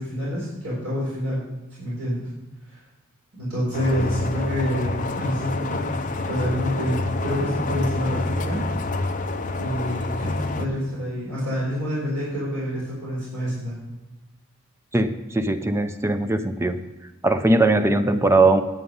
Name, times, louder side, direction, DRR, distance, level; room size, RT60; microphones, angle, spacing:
voice 1, 0.0-1.5 1.8-2.3 2.7-2.8 3.4-8.6 9.6-13.8, equal, 80° right, -7 dB, 4.2 m, -27 dB
sound 1, 3.7-10.7, left 2 dB, 35° left, 0.6 m, -28 dB
voice 2, 14.9-16.8 17.2-18.6, right 2 dB, 10° right, 9 dB, 0.5 m, -20 dB
9.6 x 8.3 x 5.4 m, 1.1 s
head